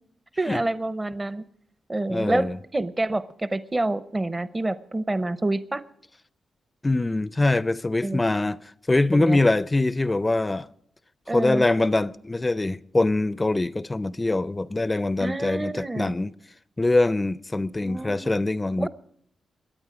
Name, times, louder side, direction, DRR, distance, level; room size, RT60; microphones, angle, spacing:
voice 1, 0.4-1.4 1.9-5.8 8.0-8.2 9.1-9.4 11.3-11.6 15.2-16.1 17.8-18.3 18.8-18.9, right 2 dB, 25° right, 0.7 m, -27 dB
voice 2, 2.1-2.6 6.8-8.6 8.9-10.7 11.3-16.3 16.8-18.9, left 2 dB, 25° left, 0.4 m, -23 dB
22.5 x 8.9 x 4.9 m
cardioid pair, 60°, 0 cm